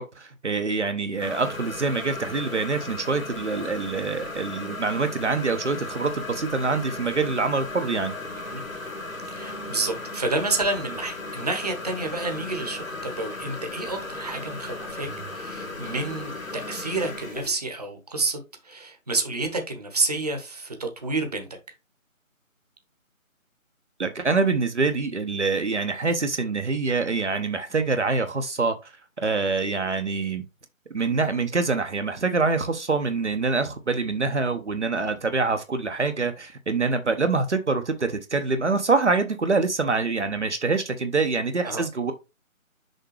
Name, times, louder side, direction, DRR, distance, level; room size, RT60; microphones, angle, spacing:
voice 1, 0.0-8.1 24.0-28.9 29.2-30.4 30.9-42.1, right 4 dB, 55° right, 0.9 m, -25 dB
sound 1, 1.2-17.5, left 2 dB, 70° left, 2.1 m, -36 dB
voice 2, 9.3-18.4 18.6-21.5 41.6-41.8, right 2 dB, 30° right, 1.0 m, -29 dB
6.6 x 5.0 x 3.2 m
figure-of-eight pair, 165°, 41 cm